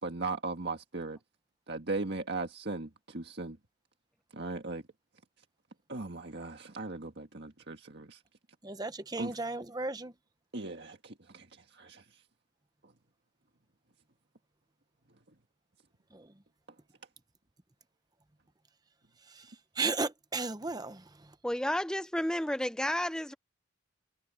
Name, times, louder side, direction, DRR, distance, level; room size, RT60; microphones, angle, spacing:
voice 1, 0.0-1.2 1.7-3.6 4.3-4.8 5.9-8.2 9.2-9.4 10.5-11.5 11.7-12.0, right 3 dB, 55° right, 1.7 m, -38 dB
voice 2, 8.6-10.1 16.1-16.2 19.8-21.0, right 3 dB, 20° right, 0.9 m, -34 dB
voice 3, 21.4-23.3, left 1 dB, 5° left, 0.5 m, -31 dB
head